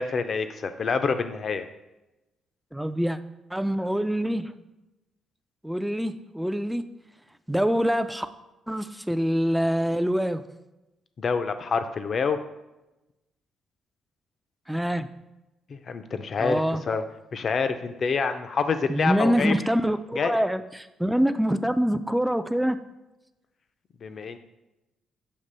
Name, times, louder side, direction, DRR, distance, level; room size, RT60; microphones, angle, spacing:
voice 1, 0.0-1.7 11.2-12.4 15.7-16.6 16.9-17.0 17.3-19.5 20.2-20.3 24.0-24.4, left 5 dB, 50° left, 9 dB, 0.5 m, -27 dB
voice 2, 2.7-3.2 3.5-4.5 5.6-6.8 7.5-8.3 8.7-10.4 14.7-15.1 16.4-16.8 18.9-22.8, equal, 5° right, 11 dB, 0.4 m, -25 dB
6.6 x 2.9 x 5.5 m, 1.0 s
cardioid pair, 90°, 0 cm